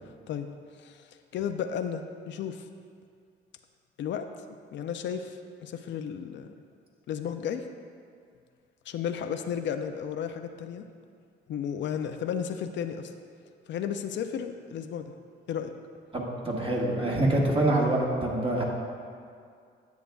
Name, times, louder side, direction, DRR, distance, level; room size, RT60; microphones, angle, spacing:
voice 1, 1.3-2.6 4.0-4.3 4.7-6.5 7.1-7.7 8.9-10.9 11.5-13.1 13.7-15.1 15.5-15.8, left 8 dB, 65° left, 7 dB, 0.5 m, -33 dB
voice 2, 16.1-18.6, right 1 dB, 25° right, -2 dB, 1.5 m, -25 dB
10.0 x 8.2 x 2.3 m, 2.2 s
cardioid pair, 90°, 20 cm